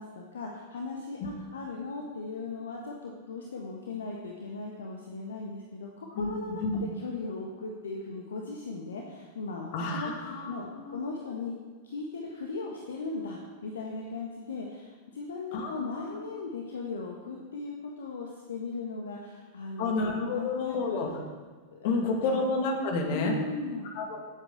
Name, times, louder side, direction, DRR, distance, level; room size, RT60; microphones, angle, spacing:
voice 1, 0.0-11.5 11.8-21.0 21.7-22.4 23.1-23.9, left 3 dB, 65° left, 0 dB, 1.4 m, -38 dB
voice 2, 9.7-10.5 10.8-11.0 15.5-15.7 16.0-16.1 19.8-21.1 21.8-23.3 24.0-24.2, left 3 dB, 50° left, 2 dB, 2.4 m, -30 dB
16.5 x 8.1 x 4.2 m, 1.4 s
figure-of-eight pair, 90°, 0 cm